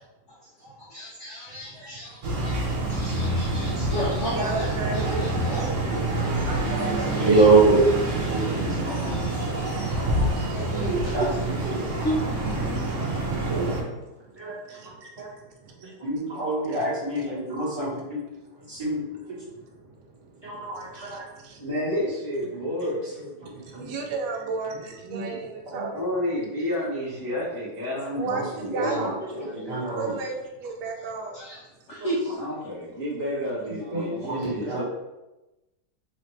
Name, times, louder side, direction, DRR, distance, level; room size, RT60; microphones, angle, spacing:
voice 1, 0.3-7.3 8.0-10.0 10.3-11.2 12.0-12.2 28.3-28.5 28.8-30.1 31.3-32.7 33.6-34.8, equal, 65° left, -5 dB, 0.7 m, -35 dB
sound 1, 2.2-13.8, right 2 dB, 55° right, 1.0 m, -27 dB
voice 2, 4.4-5.0 6.5-7.5 8.1-8.4 9.5-10.7 11.0-11.2 12.6-15.9 18.6-18.8 19.4-21.7 23.6-26.0 28.2-29.2 29.9-30.3 30.6-31.4, right 4 dB, 75° right, 2 dB, 1.1 m, -36 dB
voice 3, 7.2-7.8 8.2-8.6 8.8-9.7 10.0-10.1 11.1-11.8 14.4-14.8 15.2-15.3 15.8-19.4 20.4-21.3 22.5-22.9 23.2-23.9 25.0-25.4 25.7-25.9 28.0-30.1 33.7-34.8, right 3 dB, 20° right, -9 dB, 1.0 m, -26 dB
voice 4, 21.6-23.1 25.9-28.2 28.7-29.0 32.4-34.8, left 1 dB, 20° left, -7 dB, 0.5 m, -30 dB
4.2 x 2.4 x 3.2 m, 1.0 s
omnidirectional pair, 1.8 m